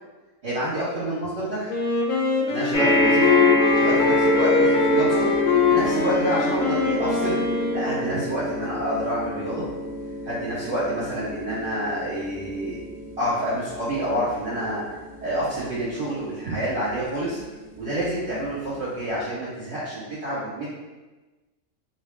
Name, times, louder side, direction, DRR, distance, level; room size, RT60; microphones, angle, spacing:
voice 1, 0.4-1.7 2.5-3.4 3.7-5.3 5.7-7.4 7.7-9.7 10.2-12.8 13.2-14.8 15.2-17.4 17.7-20.7, right 1 dB, 55° right, -12 dB, 1.5 m, -28 dB
Wind instrument woodwind instrument, 1.7-8.4, left 4 dB, 80° left, 1.0 m, -23 dB
sound 1, 2.7-17.3 18.0-18.1 18.4-18.5, left 1 dB, 60° left, 1.5 m, -26 dB
3.6 x 2.4 x 3.3 m, 1.2 s
omnidirectional pair, 1.4 m